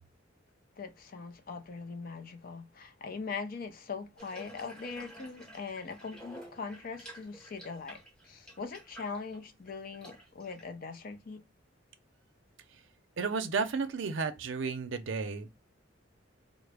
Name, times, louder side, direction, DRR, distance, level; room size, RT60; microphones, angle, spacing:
voice 1, 0.8-8.0 8.3-11.4, left 4 dB, 45° left, 0.5 m, -41 dB
Water tap faucet / Bathtub (filling or washing), 4.2-10.7, right 1 dB, 5° left, 0.7 m, -51 dB
voice 2, 13.2-15.5, right 4 dB, 65° right, 0.5 m, -32 dB
3.7 x 2.0 x 3.3 m
head